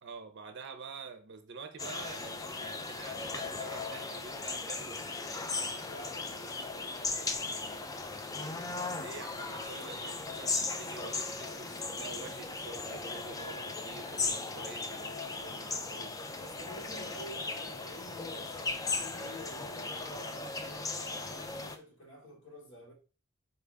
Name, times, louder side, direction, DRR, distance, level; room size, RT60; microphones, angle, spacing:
voice 1, 0.0-5.4 8.9-16.1, right 4 dB, 60° right, 0.6 m, -47 dB
sound 1, 1.8-21.8, left 3 dB, 15° left, 0.3 m, -37 dB
voice 2, 5.8-6.5 6.8-7.9 16.3-22.9, left 1 dB, 70° left, 1.4 m, -49 dB
4.2 x 2.5 x 3.3 m
head